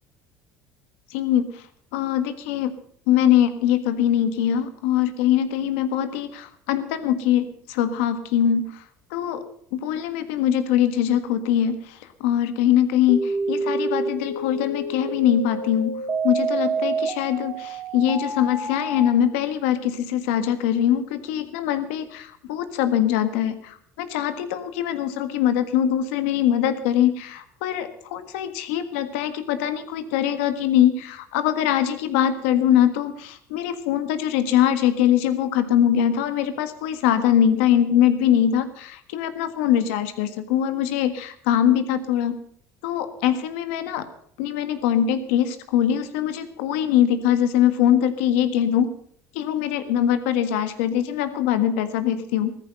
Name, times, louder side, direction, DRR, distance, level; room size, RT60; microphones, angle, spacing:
voice 1, 1.1-1.6 1.9-2.7 3.1-8.8 9.1-9.4 9.7-42.4 42.8-44.1 44.4-48.9 49.3-52.6, left 10 dB, 90° left, 10 dB, 1.6 m, -22 dB
sound 1, 13.1-19.1, right 3 dB, 30° right, 2.6 m, -28 dB
15.0 x 14.0 x 5.5 m, 0.63 s
supercardioid pair, 105°, 7 cm